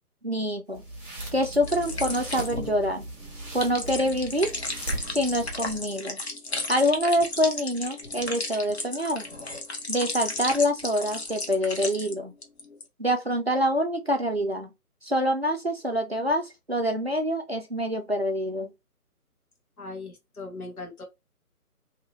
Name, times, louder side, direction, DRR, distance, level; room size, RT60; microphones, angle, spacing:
voice 1, 0.2-0.8 1.3-3.1 3.5-4.5 5.1-6.2 6.7-9.3 9.9-12.3 13.0-14.7 15.0-18.7, equal, 45° right, 0.4 m, -26 dB
sound 1, 0.7-6.0, right 1 dB, 10° right, 1.1 m, -38 dB
sound 2, 1.6-12.1 12.4-12.8, left 2 dB, 45° left, 0.7 m, -34 dB
voice 2, 19.8-21.0, left 3 dB, 65° left, 1.2 m, -39 dB
2.7 x 2.4 x 2.9 m
figure-of-eight pair, 150°, 46 cm